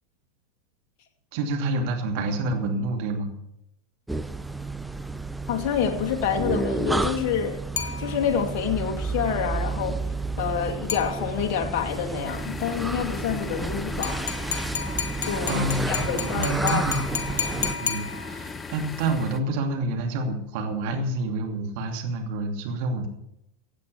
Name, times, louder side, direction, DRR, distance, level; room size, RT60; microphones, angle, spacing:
voice 1, 1.3-3.3 15.5-23.1, right 2 dB, 55° right, 3 dB, 2.7 m, -28 dB
sound 1, 4.1-17.7, right 3 dB, 5° right, 0.8 m, -31 dB
voice 2, 5.5-7.6 8.0-10.0 10.4-14.3 15.2-16.9, left 7 dB, 50° left, 2 dB, 2.5 m, -27 dB
sound 2, 7.8-8.6 10.9-11.6 14.0-18.6, left 7 dB, 70° left, 1.1 m, -33 dB
sound 3, 12.2-19.4, left 4 dB, 20° left, 1.0 m, -37 dB
16.5 x 8.5 x 6.8 m, 0.80 s
figure-of-eight pair, 90°, 0 cm